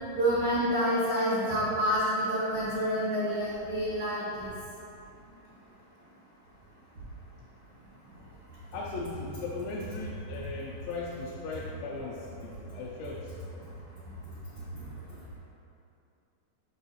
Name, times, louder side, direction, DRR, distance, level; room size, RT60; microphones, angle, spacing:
voice 1, 0.1-4.5, equal, 55° right, -12 dB, 1.5 m, -28 dB
voice 2, 8.7-13.3, left 3 dB, 90° left, -4 dB, 2.5 m, -38 dB
6.7 x 6.3 x 2.7 m, 2.8 s
omnidirectional pair, 4.1 m